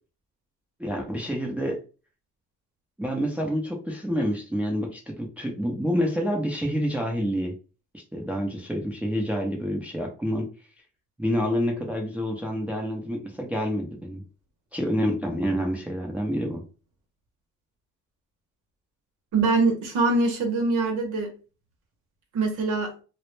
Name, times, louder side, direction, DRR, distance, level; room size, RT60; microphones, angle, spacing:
voice 1, 0.8-1.8 3.0-7.5 7.9-10.5 11.2-14.2 14.7-16.6, equal, 5° right, 0.5 m, -28 dB
voice 2, 19.3-21.3 22.3-22.9, right 3 dB, 80° right, 0.7 m, -23 dB
2.0 x 2.0 x 3.1 m
cardioid pair, 90°, 30 cm